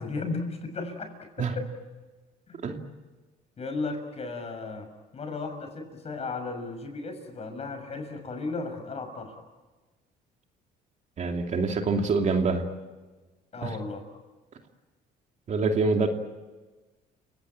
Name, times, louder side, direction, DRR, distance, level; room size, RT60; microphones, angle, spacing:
voice 1, 0.0-1.6 2.5-2.6 3.6-4.9 5.1-9.4 13.5-14.0, left 3 dB, 40° left, 7 dB, 6.5 m, -35 dB
voice 2, 11.2-12.7 13.6-13.7 15.5-16.1, right 4 dB, 45° right, 3 dB, 2.8 m, -25 dB
30.0 x 18.0 x 9.0 m, 1.2 s
cardioid pair, 110°, 17 cm